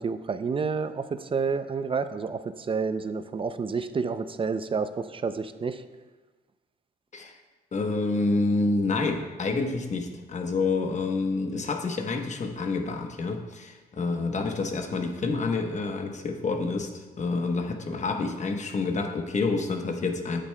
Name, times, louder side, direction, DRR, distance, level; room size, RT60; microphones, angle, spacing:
voice 1, 0.0-2.4 2.7-5.8, right 5 dB, 30° right, 11 dB, 0.5 m, -29 dB
voice 2, 7.7-20.4, left 3 dB, 45° left, 4 dB, 1.0 m, -28 dB
10.0 x 8.2 x 2.2 m, 1.2 s
cardioid pair, 80°, 17 cm